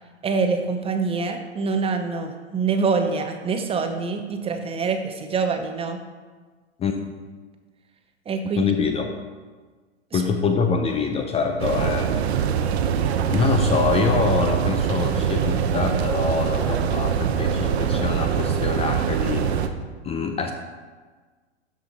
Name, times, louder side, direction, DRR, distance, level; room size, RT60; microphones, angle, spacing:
voice 1, 0.2-6.0 8.3-8.6 10.1-10.2 12.1-12.2, right 4 dB, 15° right, 6 dB, 0.7 m, -25 dB
voice 2, 8.6-9.2 10.1-12.3 13.2-19.7 20.0-20.5, left 4 dB, 15° left, 5 dB, 0.6 m, -25 dB
sound 1, 11.6-19.7, right 8 dB, 65° right, 0.9 m, -23 dB
12.5 x 5.2 x 4.1 m, 1.4 s
hypercardioid pair, 110°, 35 cm